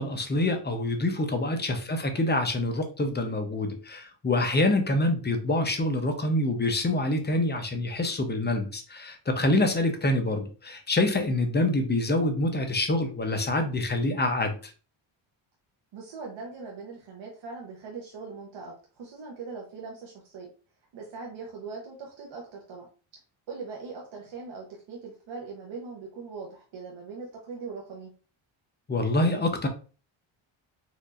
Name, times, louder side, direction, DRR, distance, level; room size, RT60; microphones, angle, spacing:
voice 1, 0.0-14.7 28.9-29.7, left 2 dB, 20° left, 5 dB, 0.7 m, -26 dB
voice 2, 15.9-20.5 20.9-22.9 23.5-28.1, right 4 dB, 70° right, -2 dB, 1.0 m, -41 dB
4.3 x 2.7 x 2.5 m, 0.36 s
cardioid pair, 100°, 49 cm